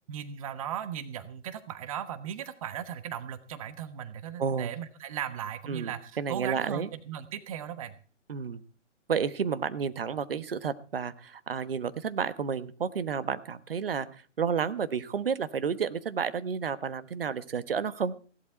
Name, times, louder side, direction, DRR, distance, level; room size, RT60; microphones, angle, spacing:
voice 1, 0.1-8.0, right 9 dB, 30° right, 13 dB, 1.2 m, -37 dB
voice 2, 4.4-4.7 5.7-6.9 8.3-8.6 9.1-14.1 14.4-18.1, right 6 dB, 50° right, 14 dB, 1.2 m, -31 dB
16.5 x 12.0 x 4.4 m, 0.39 s
figure-of-eight pair, 130°, 36 cm